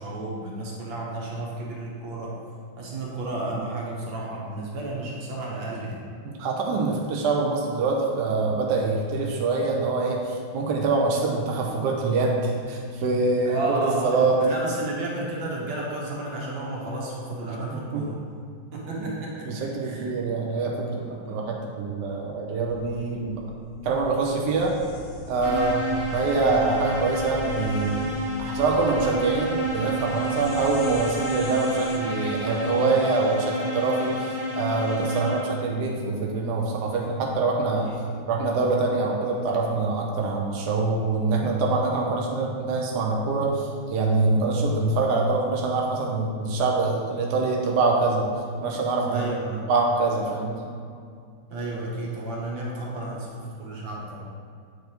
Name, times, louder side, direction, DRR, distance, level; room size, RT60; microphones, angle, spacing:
voice 1, 0.0-2.4 2.8-6.0 13.5-18.2 18.7-20.1 21.0-21.4 25.5-25.8 37.9-38.3 49.1-49.6 51.5-54.3, right 2 dB, 85° right, -4 dB, 2.0 m, -32 dB
voice 2, 6.2-14.4 17.9-18.0 19.5-23.4 23.8-24.8 25.3-25.7 26.1-28.1 28.4-34.3 34.5-37.9 38.3-48.2 48.6-49.3 49.7-50.6, right 3 dB, 70° right, -1 dB, 1.2 m, -25 dB
sound 1, 22.7-32.0, left 2 dB, 70° left, 1.4 m, -40 dB
sound 2, 25.4-35.8, equal, 45° left, 0.6 m, -30 dB
7.8 x 3.4 x 4.4 m, 2.3 s
omnidirectional pair, 2.0 m